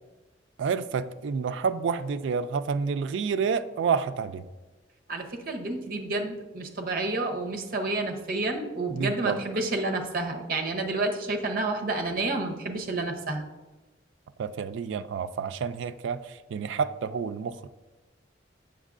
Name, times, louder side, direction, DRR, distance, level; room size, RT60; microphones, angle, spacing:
voice 1, 0.6-4.5 8.9-9.4 14.4-17.7, right 5 dB, 75° right, 12 dB, 0.3 m, -29 dB
voice 2, 5.1-13.4, right 2 dB, 50° right, 4 dB, 0.7 m, -30 dB
7.3 x 5.9 x 2.5 m, 1.2 s
head